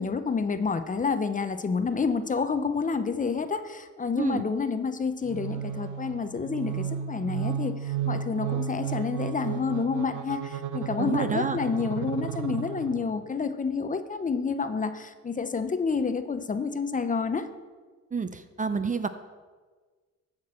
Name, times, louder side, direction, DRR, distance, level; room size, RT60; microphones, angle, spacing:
voice 1, 0.0-17.5, left 5 dB, 25° left, 10 dB, 0.6 m, -29 dB
sound 1, 5.2-13.2, right 8 dB, 75° right, 0.8 m, -33 dB
voice 2, 11.0-11.6 18.1-19.1, right 5 dB, 25° right, 10 dB, 0.5 m, -29 dB
14.0 x 5.9 x 4.4 m, 1.4 s
cardioid pair, 90°, 30 cm